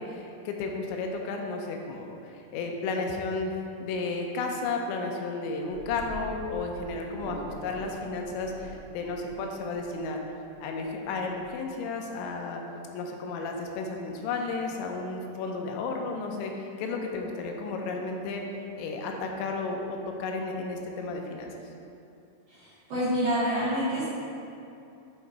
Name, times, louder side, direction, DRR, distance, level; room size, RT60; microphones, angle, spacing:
voice 1, 0.0-3.5 3.8-10.2 10.6-12.6 12.9-18.4 18.8-21.5, left 3 dB, 85° left, 2 dB, 2.9 m, -33 dB
sound 1, 5.6-12.4, right 2 dB, 80° right, 2.1 m, -44 dB
voice 2, 22.5-24.1, equal, 65° right, -12 dB, 2.1 m, -27 dB
8.8 x 3.0 x 4.6 m, 2.7 s
omnidirectional pair, 5.3 m